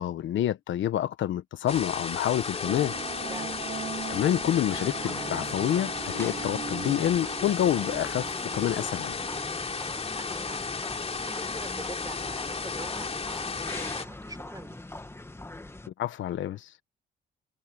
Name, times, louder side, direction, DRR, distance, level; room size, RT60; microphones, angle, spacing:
voice 1, 0.0-2.9 4.1-9.2 16.0-16.7, left 11 dB, 75° left, 1.2 m, -28 dB
sound 1, 1.7-14.0, left 4 dB, 30° left, 3.1 m, -34 dB
sound 2, 2.6-10.0, right 7 dB, 45° right, 1.5 m, -41 dB
voice 2, 3.2-3.7 9.7-10.7 11.0-14.8, right 2 dB, 20° right, 5.6 m, -45 dB
sound 3, 4.7-15.9, left 2 dB, 10° left, 1.9 m, -43 dB
cardioid pair, 90°, 20 cm